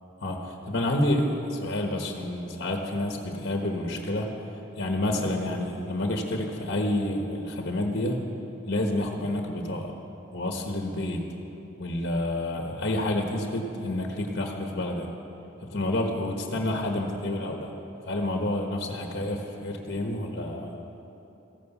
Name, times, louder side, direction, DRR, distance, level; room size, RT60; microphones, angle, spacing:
voice 1, 0.2-4.3 4.8-8.2 8.7-9.9 10.3-11.3 11.8-15.1 15.6-17.7 18.0-20.8, left 1 dB, 55° left, 3 dB, 1.2 m, -29 dB
14.5 x 11.5 x 7.0 m, 3.0 s
head